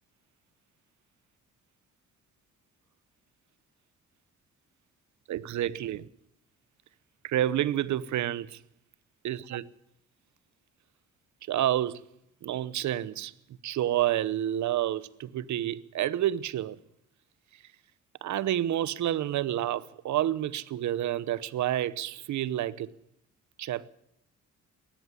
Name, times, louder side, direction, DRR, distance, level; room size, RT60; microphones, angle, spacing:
voice 1, 5.3-6.1 7.2-8.6 9.2-9.7 11.5-12.0 12.4-13.3 13.6-16.8 18.2-22.9 23.6-23.9, right 12 dB, 70° right, 0.9 m, -29 dB
18.5 x 14.5 x 9.8 m
cardioid pair, 90°, 30 cm